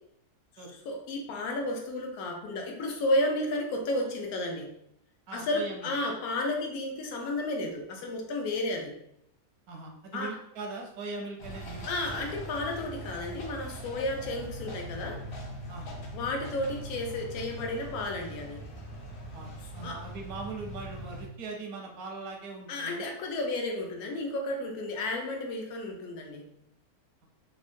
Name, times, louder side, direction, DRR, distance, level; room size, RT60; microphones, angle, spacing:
voice 1, 0.6-4.7 5.3-8.9 10.1-10.3 11.9-15.2 16.1-18.6 19.8-20.0 22.7-26.5, left 1 dB, 80° left, 2 dB, 1.1 m, -32 dB
voice 2, 5.3-5.9 9.7-12.3 15.7-16.0 19.3-23.1, right 3 dB, 80° right, 1 dB, 1.1 m, -40 dB
sound 1, 11.4-21.3, equal, 55° left, 0.8 m, -41 dB
3.5 x 2.1 x 2.5 m, 0.76 s
omnidirectional pair, 1.5 m